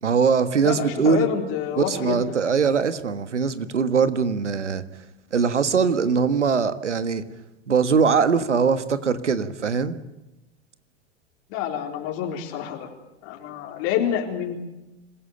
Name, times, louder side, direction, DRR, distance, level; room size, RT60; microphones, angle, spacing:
voice 1, 0.0-1.3 1.8-4.8 5.3-7.2 7.7-10.0, right 6 dB, 90° right, 12 dB, 1.5 m, -21 dB
voice 2, 0.6-2.2 11.5-12.9 13.2-14.6, left 10 dB, 55° left, 1 dB, 4.0 m, -27 dB
27.0 x 16.0 x 8.8 m, 0.97 s
hypercardioid pair, 95°, 35 cm